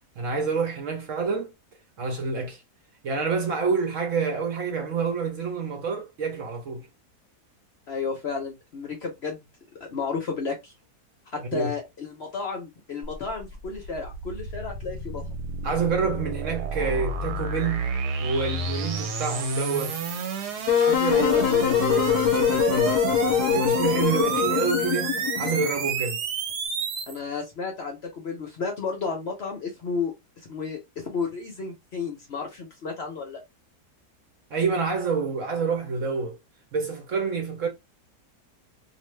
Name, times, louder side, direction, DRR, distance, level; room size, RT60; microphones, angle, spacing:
voice 1, 0.2-1.5 2.0-2.6 3.0-6.9 11.4-11.7 15.6-17.9 18.2-20.0 20.7-26.2 34.5-36.4 36.7-37.7, right 5 dB, 60° right, 0.9 m, -28 dB
voice 2, 7.9-9.4 9.8-10.7 11.3-15.2 21.1-21.4 27.1-33.4, left 5 dB, 55° left, 0.8 m, -32 dB
sound 1, 13.0-27.2, right 4 dB, 90° right, 1.3 m, -30 dB
Wind instrument woodwind instrument, 20.7-25.8, left 9 dB, 80° left, 1.1 m, -23 dB
2.5 x 2.4 x 3.1 m
omnidirectional pair, 1.7 m